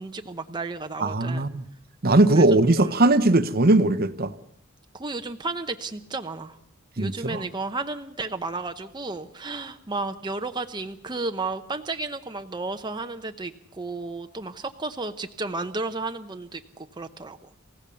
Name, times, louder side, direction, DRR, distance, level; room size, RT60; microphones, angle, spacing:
voice 1, 0.0-1.5 2.3-2.5 2.8-2.9 4.9-6.6 7.0-17.5, right 3 dB, 20° right, 6 dB, 0.8 m, -33 dB
voice 2, 1.0-1.6 2.0-4.3 7.0-7.4, right 2 dB, 45° right, 12 dB, 1.0 m, -19 dB
28.0 x 16.0 x 6.9 m, 0.70 s
head